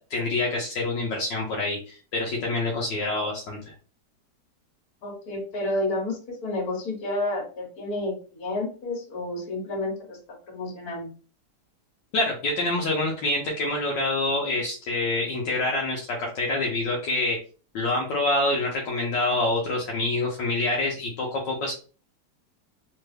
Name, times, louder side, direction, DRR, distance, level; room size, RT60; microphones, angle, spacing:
voice 1, 0.1-3.7 12.1-17.4 17.7-21.7, left 2 dB, 80° left, -2 dB, 1.4 m, -26 dB
voice 2, 5.0-10.2 10.5-11.1, left 2 dB, 60° left, -1 dB, 1.8 m, -30 dB
3.4 x 2.2 x 3.2 m, 0.38 s
omnidirectional pair, 1.9 m